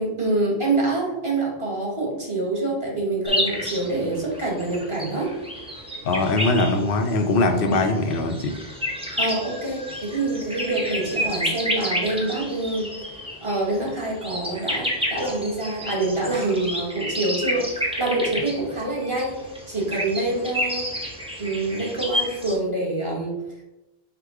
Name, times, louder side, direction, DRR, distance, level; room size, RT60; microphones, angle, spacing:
voice 1, 0.0-5.3 9.2-12.9 13.4-19.4 19.7-20.9 21.4-23.3, right 2 dB, 30° right, -4 dB, 1.3 m, -26 dB
sound 1, 3.2-22.5, equal, 5° right, 0.7 m, -30 dB
voice 2, 6.0-8.6, left 2 dB, 65° left, 5 dB, 0.8 m, -21 dB
4.9 x 2.2 x 4.6 m, 0.94 s
omnidirectional pair, 1.0 m